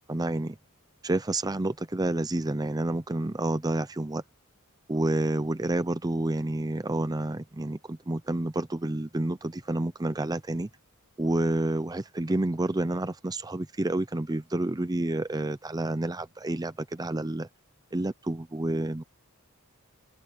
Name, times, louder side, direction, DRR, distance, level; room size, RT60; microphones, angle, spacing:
voice 1, 0.1-0.6 1.0-4.2 4.9-10.7 11.2-17.5 17.9-19.0, right 2 dB, 15° right, 0.6 m, -29 dB
head